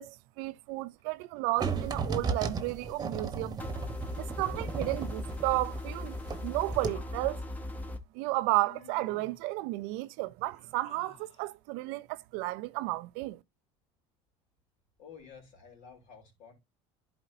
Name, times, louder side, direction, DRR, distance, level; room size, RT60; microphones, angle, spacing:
voice 1, 0.0-3.6 4.2-6.2 6.4-7.4 8.1-13.4, right 19 dB, 80° right, 0.4 m, -33 dB
sound 1, 1.6-6.5 6.7-6.9, right 5 dB, 25° right, 1.1 m, -35 dB
sound 2, 3.6-8.0, left 1 dB, 10° left, 1.0 m, -38 dB
Human voice, 6.1-7.6 8.6-9.5 10.4-11.5, left 5 dB, 45° left, 1.3 m, -55 dB
voice 2, 15.0-16.5, left 6 dB, 65° left, 3.8 m, -51 dB
11.0 x 4.2 x 2.7 m
supercardioid pair, 95°, 14 cm